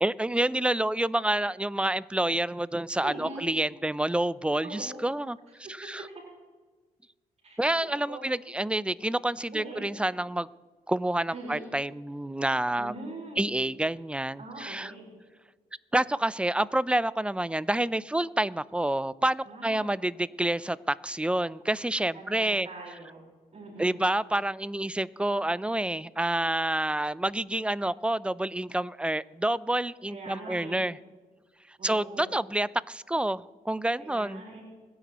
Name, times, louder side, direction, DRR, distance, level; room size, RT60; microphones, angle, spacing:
voice 1, 0.0-5.4 5.7-6.1 7.6-10.5 10.9-13.0 13.4-14.9 15.9-22.7 23.8-31.0 31.8-34.4, right 1 dB, 5° right, 18 dB, 0.5 m, -28 dB
voice 2, 3.0-3.5 4.6-5.0 7.4-8.3 9.5-9.8 11.3-11.6 12.8-13.4 14.4-15.1 19.4-19.8 22.1-23.2 23.5-24.1 30.1-30.9 31.8-32.4 34.0-34.6, right 2 dB, 45° right, -3 dB, 4.7 m, -42 dB
25.5 x 10.5 x 3.0 m, 1.4 s
cardioid pair, 75°, 16 cm